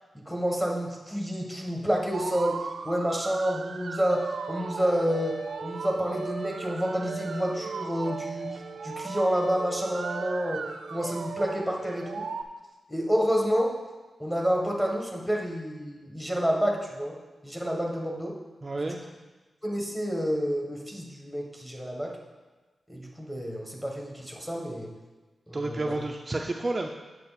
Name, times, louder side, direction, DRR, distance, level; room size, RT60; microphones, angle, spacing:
voice 1, 0.2-8.5 8.8-10.6 10.9-12.2 12.9-13.7 14.2-17.2 17.4-18.4 19.6-22.2 22.9-24.9 25.5-25.9, equal, 5° left, -1 dB, 1.6 m, -29 dB
sound 1, 2.1-12.4, right 5 dB, 75° right, 0.6 m, -37 dB
voice 2, 18.6-19.0 25.5-26.9, right 2 dB, 30° right, 1 dB, 0.5 m, -30 dB
8.4 x 7.3 x 4.2 m, 1.2 s
wide cardioid pair, 110°, 0 cm